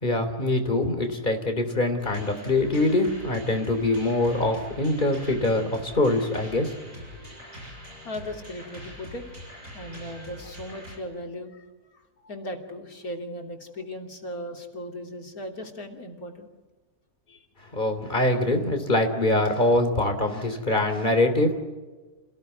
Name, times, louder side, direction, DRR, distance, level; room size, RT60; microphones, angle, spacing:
voice 1, 0.0-6.7 17.7-21.6, left 2 dB, 30° left, 6 dB, 3.4 m, -24 dB
sound 1, 2.0-11.0, equal, 60° right, 7.6 m, -43 dB
voice 2, 8.0-9.2 9.7-16.5 17.3-17.5, left 1 dB, 70° left, 3 dB, 3.5 m, -37 dB
28.5 x 17.0 x 9.4 m, 1.3 s
omnidirectional pair, 1.6 m